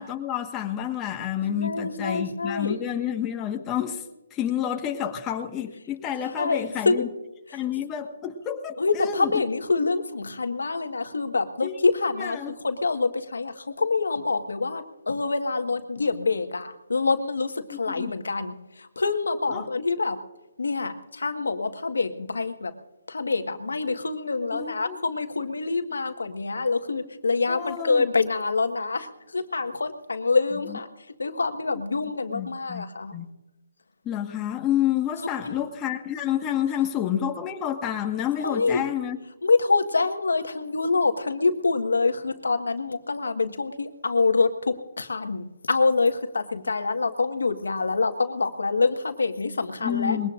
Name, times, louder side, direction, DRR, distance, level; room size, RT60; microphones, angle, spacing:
voice 1, 0.0-4.0 4.3-7.1 7.5-9.3 11.6-11.8 12.2-12.5 18.0-18.1 19.5-19.6 24.5-25.0 27.5-28.0 32.3-32.8 33.1-33.3 34.0-39.2 49.8-50.3, left 10 dB, 15° left, 3 dB, 1.4 m, -29 dB
voice 2, 1.4-2.9 6.2-7.0 7.5-7.6 8.8-20.2 20.6-22.7 23.1-30.9 31.2-33.1 35.4-35.6 38.4-38.9 39.4-50.3, left 4 dB, 90° left, 7 dB, 1.5 m, -26 dB
22.0 x 18.0 x 2.5 m, 0.98 s
hypercardioid pair, 155°, 0 cm